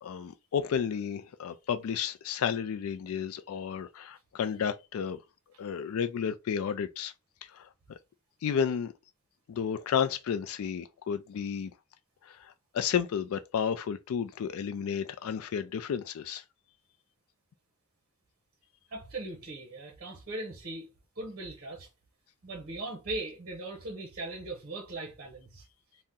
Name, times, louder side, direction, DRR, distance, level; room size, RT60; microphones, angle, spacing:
voice 1, 0.0-5.2 5.6-7.1 7.5-7.7 8.4-8.9 9.5-11.7 12.3-16.4, left 7 dB, 70° left, 0.3 m, -32 dB
voice 2, 18.9-20.9 21.2-21.9 22.4-25.6, right 2 dB, 45° right, 0.7 m, -39 dB
2.7 x 2.1 x 3.6 m
head